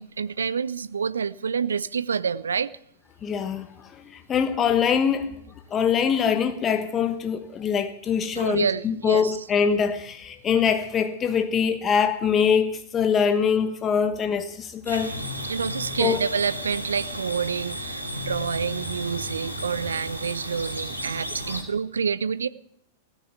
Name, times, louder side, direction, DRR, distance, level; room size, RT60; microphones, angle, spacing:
voice 1, 0.0-2.7 8.3-9.4 15.4-22.5, right 6 dB, 70° right, 0.6 m, -28 dB
voice 2, 3.2-3.7 4.1-5.3 5.7-15.1 16.0-16.2, left 7 dB, 25° left, 1.2 m, -23 dB
sound 1, 14.9-21.6, equal, 90° right, 2.6 m, -33 dB
17.0 x 9.2 x 8.2 m
figure-of-eight pair, 95°, 0 cm